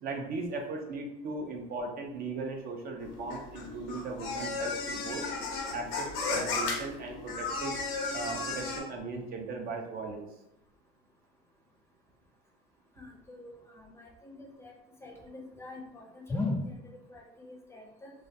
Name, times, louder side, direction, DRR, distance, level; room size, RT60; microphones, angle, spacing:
voice 1, 0.0-5.2 5.7-7.8 8.1-10.3, right 3 dB, 50° right, 2 dB, 0.5 m, -38 dB
sound 1, 3.0-8.8, left 3 dB, 80° left, 0.6 m, -35 dB
voice 2, 12.9-14.7 15.0-18.1, left 2 dB, 15° left, -1 dB, 0.5 m, -39 dB
2.3 x 2.2 x 2.6 m, 0.85 s
cardioid pair, 105°, 20 cm